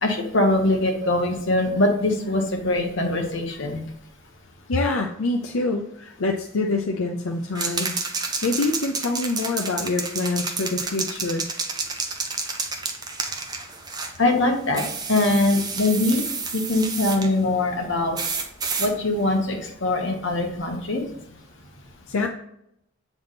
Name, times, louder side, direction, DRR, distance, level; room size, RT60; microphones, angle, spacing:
voice 1, 0.0-3.8 14.2-14.8 15.1-16.2 16.5-18.2 18.8-21.0, left 2 dB, 60° left, 2 dB, 1.3 m, -22 dB
voice 2, 4.7-7.9 8.4-11.4 22.1-22.3, left 3 dB, 80° left, 2 dB, 0.6 m, -25 dB
sound 1, 7.6-14.2 14.7-17.3 18.2-18.9, right 4 dB, 20° right, 0.6 m, -30 dB
7.9 x 3.5 x 4.1 m, 0.76 s
head